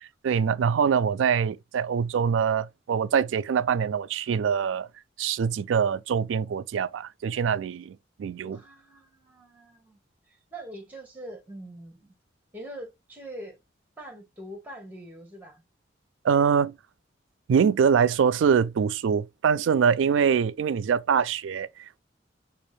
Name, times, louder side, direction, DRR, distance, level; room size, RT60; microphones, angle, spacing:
voice 1, 0.2-4.9 5.2-8.6 16.2-16.8 17.5-22.0, right 7 dB, 85° right, 0.3 m, -24 dB
voice 2, 8.4-10.0 10.5-12.1 12.5-13.6 14.0-15.6, right 1 dB, 10° right, 1.2 m, -43 dB
5.1 x 2.5 x 3.1 m
head